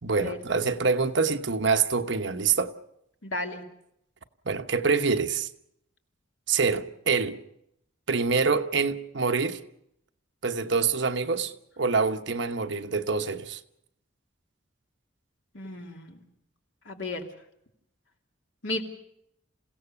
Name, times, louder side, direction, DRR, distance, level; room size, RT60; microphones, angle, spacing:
voice 1, 0.0-2.7 4.4-5.5 6.5-7.4 8.1-9.6 10.4-13.6, right 5 dB, 65° right, 1.1 m, -26 dB
voice 2, 3.2-3.6 15.5-16.2 16.8-17.2 18.6-18.8, left 2 dB, 75° left, 2.8 m, -34 dB
28.5 x 16.5 x 7.1 m
head